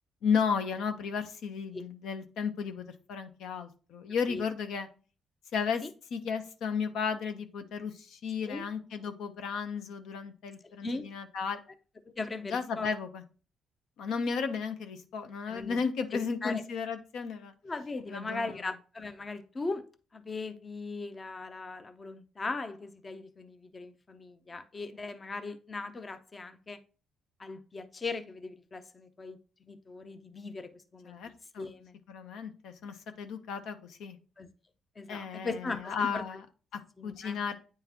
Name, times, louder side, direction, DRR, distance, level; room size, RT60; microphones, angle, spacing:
voice 1, 0.2-4.9 5.5-5.8 6.1-11.6 12.5-13.2 14.0-17.5 18.1-18.6 31.0-31.7 32.1-34.2 35.1-36.4 36.7-37.5, left 6 dB, 80° left, 8 dB, 0.7 m, -34 dB
voice 2, 12.2-12.9 15.5-15.8 16.1-16.6 17.6-19.8 20.1-26.8 27.4-29.4 29.7-31.2 31.6-31.9 34.4-34.5 35.0-36.2 37.0-37.4, left 3 dB, 30° left, 10 dB, 0.6 m, -39 dB
9.0 x 3.8 x 2.8 m, 0.37 s
cardioid pair, 90°, 0 cm